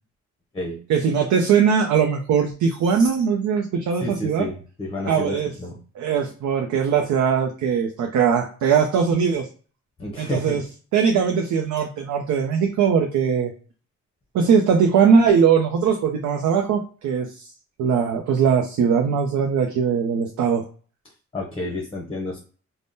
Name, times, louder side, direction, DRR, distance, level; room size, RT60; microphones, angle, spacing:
voice 1, 0.9-4.5 5.1-5.5 6.0-9.5 10.2-10.6 10.9-13.5 14.3-17.5 17.8-20.6, right 6 dB, 90° right, 3 dB, 0.5 m, -20 dB
voice 2, 4.0-5.8 10.0-10.6 21.3-22.4, left 2 dB, 20° left, 0 dB, 0.7 m, -30 dB
3.5 x 2.1 x 2.6 m, 0.39 s
cardioid pair, 105°, 29 cm